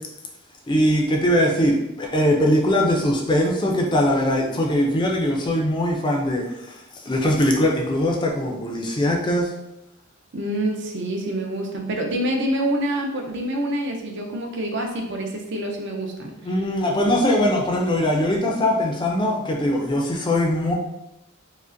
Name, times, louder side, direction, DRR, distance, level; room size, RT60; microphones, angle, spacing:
voice 1, 0.7-9.5 16.4-20.7, left 1 dB, 20° left, 0 dB, 0.4 m, -21 dB
voice 2, 10.3-16.3, right 1 dB, 55° right, 2 dB, 0.6 m, -26 dB
4.9 x 2.1 x 2.5 m, 0.87 s
head